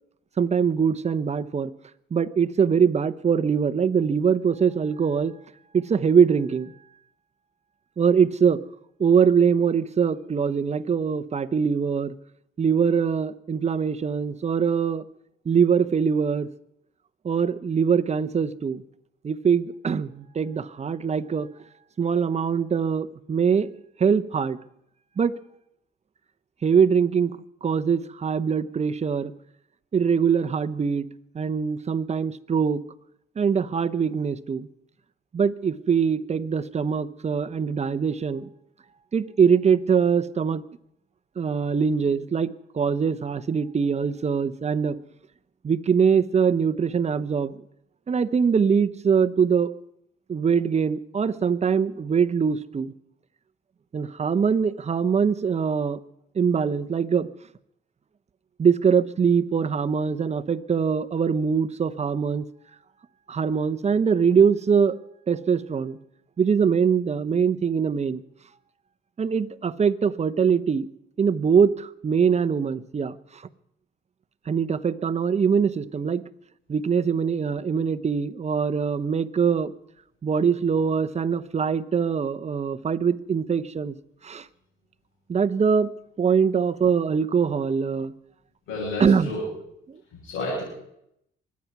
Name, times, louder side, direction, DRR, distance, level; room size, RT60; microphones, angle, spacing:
voice 1, 0.4-1.7 2.1-5.3 5.7-6.7 8.0-8.6 9.0-12.1 12.6-15.0 15.4-16.5 17.2-18.8 19.2-21.5 22.0-23.7 24.0-24.6 25.2-25.4 26.6-29.3 29.9-31.1 31.3-32.8 33.4-34.7 35.3-38.5 39.1-40.6 41.4-45.0 45.6-47.6 48.1-49.7 50.3-52.9 53.9-56.0 56.3-57.3 58.6-62.4 63.3-65.0 65.3-66.0 66.4-68.2 69.2-70.9 71.2-73.4 74.5-76.2 76.7-79.7 80.2-84.0 84.2-84.5 85.3-85.9 86.2-88.1 89.0-89.3 89.9-90.0, right 6 dB, 35° right, 14 dB, 0.8 m, -23 dB
voice 2, 88.7-89.4 90.2-90.6, left 1 dB, 90° left, -5 dB, 7.8 m, -30 dB
24.0 x 9.5 x 6.0 m, 0.77 s
cardioid pair, 90°, 20 cm